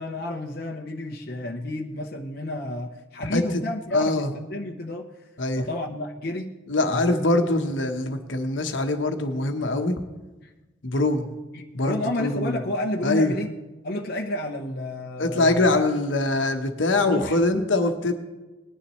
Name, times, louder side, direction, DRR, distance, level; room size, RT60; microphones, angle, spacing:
voice 1, 0.0-5.1 5.6-6.5 6.9-7.0 11.5-13.5 13.8-15.7 17.0-17.4, left 1 dB, 50° left, 1 dB, 0.8 m, -31 dB
voice 2, 3.9-4.3 5.4-5.6 6.7-9.9 10.8-11.3 11.7-12.6 13.0-13.3 15.2-18.1, left 2 dB, 80° left, 6 dB, 1.1 m, -23 dB
20.0 x 10.0 x 3.1 m, 1.1 s
head